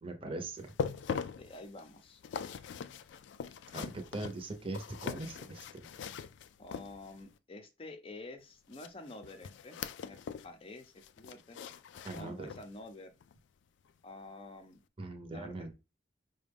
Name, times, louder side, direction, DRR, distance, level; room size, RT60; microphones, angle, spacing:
voice 1, 0.0-0.7 3.7-5.9 12.0-12.5 15.0-15.7, right 2 dB, 30° right, 5 dB, 0.7 m, -41 dB
sound 1, 0.6-7.3 8.7-10.5 10.8-12.8 13.2-13.4 13.9-14.0, left 7 dB, 75° left, 0.3 m, -42 dB
voice 2, 1.4-2.2 6.6-10.2 10.4-11.6 12.1-13.1 14.0-14.8 15.3-15.7, left 2 dB, 30° left, 7 dB, 0.6 m, -49 dB
4.9 x 2.2 x 3.4 m, 0.28 s
head